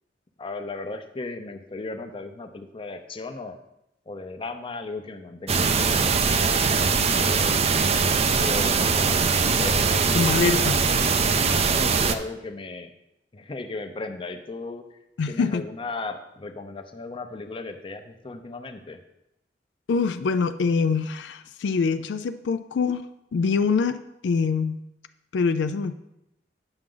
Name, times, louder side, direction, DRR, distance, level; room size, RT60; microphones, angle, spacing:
voice 1, 0.4-3.6 4.1-6.2 6.6-7.6 8.4-9.2 9.6-10.4 11.8-12.9 13.3-14.8 15.3-19.0, left 3 dB, 30° left, 7 dB, 0.6 m, -36 dB
sound 1, 5.5-12.1, right 5 dB, 35° right, 0.4 m, -21 dB
voice 2, 10.1-10.8 15.2-15.6 19.9-23.0 23.3-24.8 25.3-25.9, left 5 dB, 80° left, 10 dB, 0.4 m, -24 dB
8.8 x 6.0 x 3.8 m, 0.85 s
head